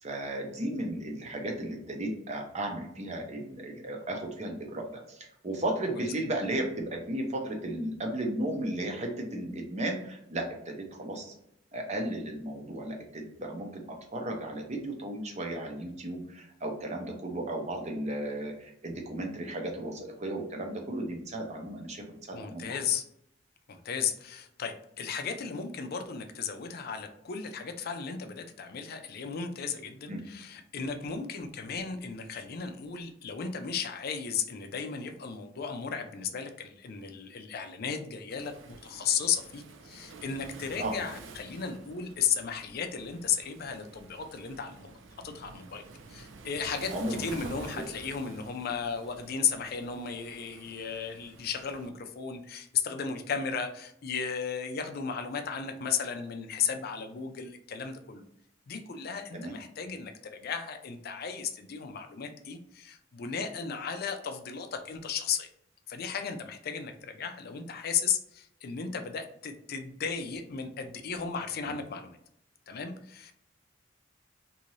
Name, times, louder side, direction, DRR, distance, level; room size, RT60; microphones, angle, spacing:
voice 1, 0.0-11.3 11.7-22.7 30.1-30.2 40.8-41.0 46.9-47.8 59.3-59.6 71.7-71.8, right 1 dB, 35° right, 2 dB, 0.7 m, -35 dB
voice 2, 22.3-23.0 23.7-44.9 45.2-45.8 46.1-46.9 47.2-58.2 58.7-65.5 65.9-72.2 72.7-73.3, left 6 dB, 55° left, 6 dB, 0.4 m, -35 dB
Waves surf, 38.3-51.9, right 4 dB, 80° right, 0.4 m, -49 dB
2.7 x 2.5 x 3.0 m, 0.75 s
head